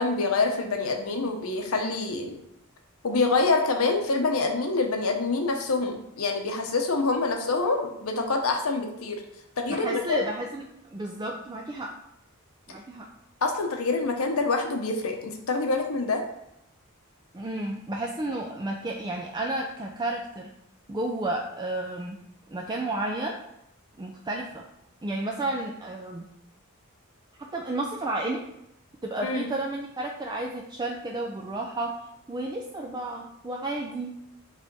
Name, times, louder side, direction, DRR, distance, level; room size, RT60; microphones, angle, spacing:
voice 1, 0.0-2.3 3.0-9.2 9.6-10.2 13.4-16.2 29.2-29.5, left 3 dB, 70° left, 3 dB, 0.9 m, -26 dB
voice 2, 9.7-11.9 12.7-13.1 17.3-20.5 20.9-22.2 22.5-23.4 24.0-24.6 25.0-26.3 27.4-28.4 29.0-31.9 32.3-34.1, right 2 dB, 20° right, 0 dB, 0.4 m, -32 dB
5.1 x 3.4 x 5.3 m, 0.81 s
head